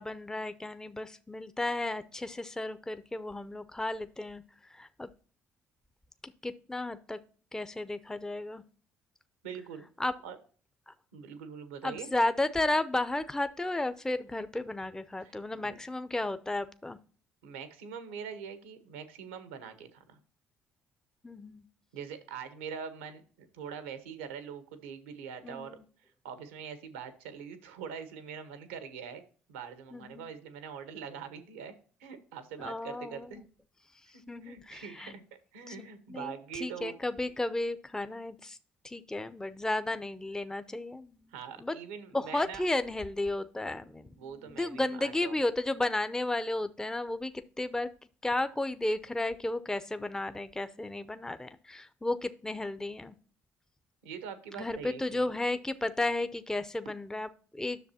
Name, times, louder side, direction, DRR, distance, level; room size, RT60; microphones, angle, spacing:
voice 1, 0.0-5.1 6.2-7.2 7.5-8.6 10.0-10.1 10.9-11.0 11.8-17.0 21.2-21.6 25.4-25.8 29.9-30.3 32.6-33.3 34.1-35.2 35.7-38.6 38.8-41.7 42.1-47.9 48.2-53.1 54.6-57.8, left 2 dB, 10° left, 11 dB, 0.6 m, -33 dB
voice 2, 9.4-9.8 10.2-10.4 11.1-12.1 15.2-15.8 17.4-20.2 21.9-25.8 26.2-29.2 29.5-31.7 32.0-33.4 34.4-35.2 35.5-37.0 41.3-42.6 44.2-45.4 54.0-55.3, right 7 dB, 90° right, 10 dB, 1.0 m, -43 dB
10.5 x 6.6 x 2.8 m, 0.41 s
hypercardioid pair, 55°, 6 cm